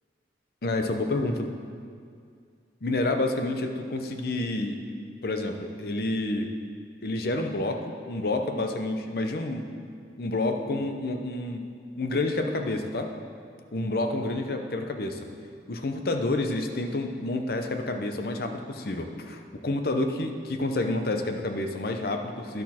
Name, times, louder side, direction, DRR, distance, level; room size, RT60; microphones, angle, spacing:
voice 1, 0.6-1.5 2.8-4.8 5.2-6.5 7.0-9.7 10.2-11.6 12.0-13.1 13.7-15.2 15.7-22.6, left 2 dB, 55° left, 5 dB, 0.7 m, -29 dB
10.5 x 6.2 x 4.3 m, 2.2 s
head